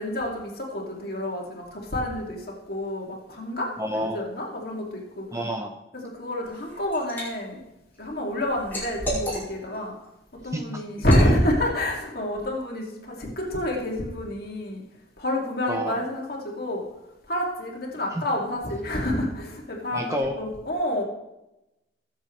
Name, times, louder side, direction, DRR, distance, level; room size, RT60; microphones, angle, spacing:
voice 1, 0.0-5.4 5.9-7.6 8.0-9.9 10.3-14.8 15.2-16.8 17.3-21.0, left 1 dB, 55° left, -1 dB, 2.5 m, -28 dB
voice 2, 3.8-4.2 5.3-5.8 10.5-10.7 15.7-16.0 18.1-18.2 19.9-20.4, equal, 15° right, 4 dB, 0.8 m, -29 dB
Liquid, 6.4-7.3 7.7-9.8 10.2-10.4 11.0-11.3, equal, 10° left, 5.2 m, -33 dB
21.0 x 7.5 x 3.3 m, 0.94 s
head